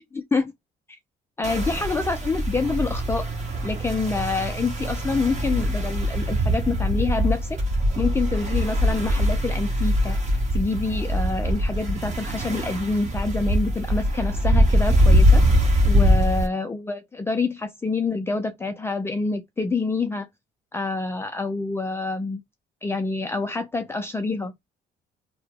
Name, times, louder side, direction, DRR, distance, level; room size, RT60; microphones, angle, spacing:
voice 1, 0.1-0.5 0.9-1.0 1.4-3.3 3.6-7.6 8.0-10.2 10.5-15.4 15.8-20.3 20.7-22.4 22.8-24.5, left 3 dB, 15° left, 0.4 m, -27 dB
sound 1, 1.4-16.5, equal, 45° right, 1.4 m, -22 dB
2.7 x 2.2 x 3.6 m
cardioid pair, 110°, 17 cm